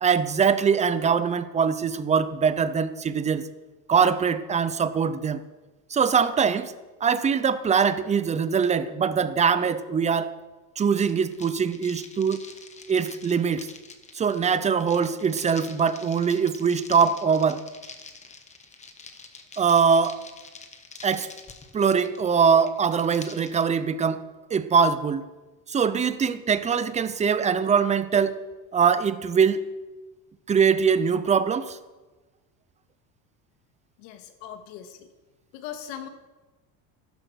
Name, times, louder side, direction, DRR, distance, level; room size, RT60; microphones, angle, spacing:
voice 1, 0.0-3.4 3.9-5.4 5.9-6.7 7.0-10.3 10.8-12.4 12.9-13.7 14.1-17.6 19.6-20.2 21.0-21.3 21.7-24.2 24.5-25.3 25.7-28.4 28.7-29.6 30.5-31.8, right 6 dB, 15° right, 13 dB, 0.7 m, -22 dB
sound 1, 10.9-23.6, left 4 dB, 15° left, 1.3 m, -46 dB
voice 2, 34.0-35.1 35.5-36.1, left 9 dB, 85° left, 7 dB, 2.1 m, -39 dB
14.5 x 12.5 x 6.4 m, 1.2 s
cardioid pair, 155°, 40 cm